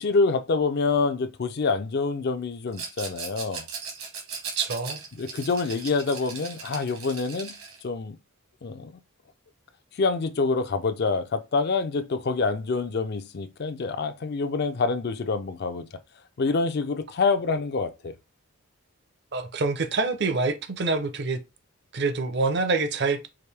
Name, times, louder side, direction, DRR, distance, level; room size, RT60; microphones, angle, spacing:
voice 1, 0.0-3.7 5.1-8.2 8.6-9.0 9.9-15.9 16.4-18.1, left 4 dB, 50° left, 0.4 m, -26 dB
Rattle, 2.7-7.8, right 5 dB, 80° right, 1.6 m, -38 dB
voice 2, 4.6-5.0 19.3-21.4 21.9-23.3, right 3 dB, 50° right, 0.6 m, -26 dB
4.8 x 2.6 x 3.3 m
head